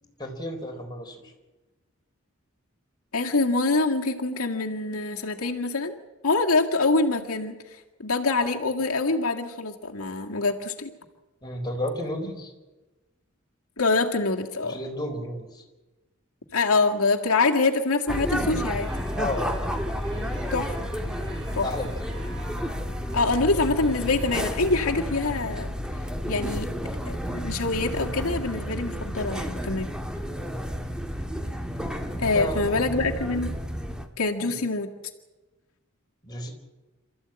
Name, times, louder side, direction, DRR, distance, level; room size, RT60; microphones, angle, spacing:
voice 1, 0.0-1.4 11.4-12.5 14.6-15.6 19.1-19.6 20.1-20.3 21.6-22.1 30.4-30.6 32.2-33.2 34.4-34.5 36.2-36.5, left 1 dB, 20° left, 1 dB, 4.1 m, -33 dB
voice 2, 3.1-5.9 6.2-10.9 13.8-14.8 16.5-18.9 20.5-20.9 21.6-21.7 23.1-25.7 26.3-26.7 27.1-29.9 32.2-33.5 34.2-34.9, left 3 dB, 90° left, 1 dB, 2.0 m, -25 dB
sound 1, 18.1-34.1, equal, 5° right, 1.7 m, -31 dB
sound 2, 18.7-25.4, right 2 dB, 25° right, 7.4 m, -47 dB
28.0 x 14.0 x 8.9 m, 1.1 s
head